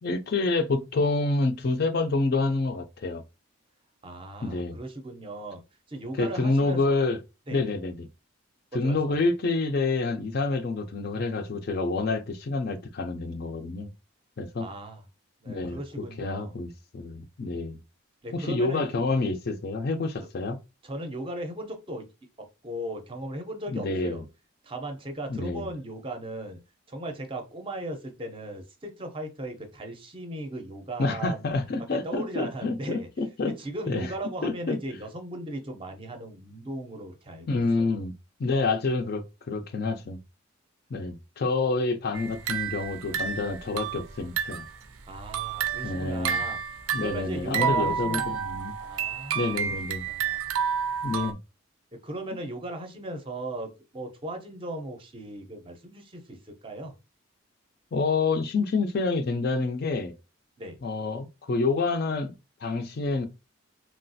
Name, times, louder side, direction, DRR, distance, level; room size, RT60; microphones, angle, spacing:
voice 1, 0.0-3.2 4.4-4.8 6.2-7.2 7.5-8.1 8.7-13.9 14.4-14.7 15.5-17.8 18.3-20.6 23.7-24.2 25.3-25.7 31.0-33.5 33.9-34.1 34.4-34.8 37.5-38.1 38.4-40.2 40.9-44.7 45.8-46.4 46.9-48.7 49.3-50.1 51.0-51.4 57.9-60.1 60.8-62.3 62.6-63.3, left 3 dB, 45° left, 0.4 m, -28 dB
voice 2, 4.0-5.6 5.9-7.0 7.5-7.6 8.7-9.2 14.6-15.0 15.4-16.5 18.2-18.9 20.8-22.1 22.6-24.2 24.6-26.6 26.9-31.5 31.9-33.1 33.5-37.9 45.1-46.6 46.9-48.4 48.8-49.4 50.0-50.4 51.9-56.9 60.6-60.8, right 1 dB, 25° right, 0.5 m, -37 dB
sound 1, 42.1-44.8 45.2-51.3, right 7 dB, 80° right, 0.4 m, -30 dB
3.1 x 2.3 x 2.6 m
head